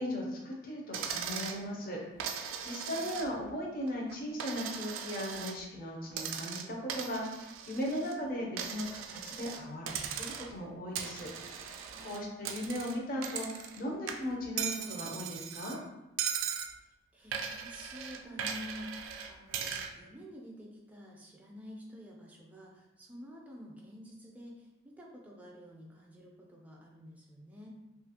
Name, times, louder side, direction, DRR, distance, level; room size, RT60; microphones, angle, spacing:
voice 1, 0.0-11.3 11.6-11.8 12.0-15.8, equal, 45° left, -1 dB, 0.6 m, -38 dB
Coin (dropping), 0.9-1.6 2.2-3.5 3.9-5.6 6.1-8.2 8.6-9.6 9.9-10.6 11.0-13.8 14.1-15.8 16.2-16.7 17.3-19.9, right 7 dB, 85° right, 0.3 m, -39 dB
voice 2, 2.5-3.2 12.0-12.4 16.8-27.7, equal, 10° right, -2 dB, 0.4 m, -49 dB
2.7 x 2.5 x 2.7 m, 0.99 s
head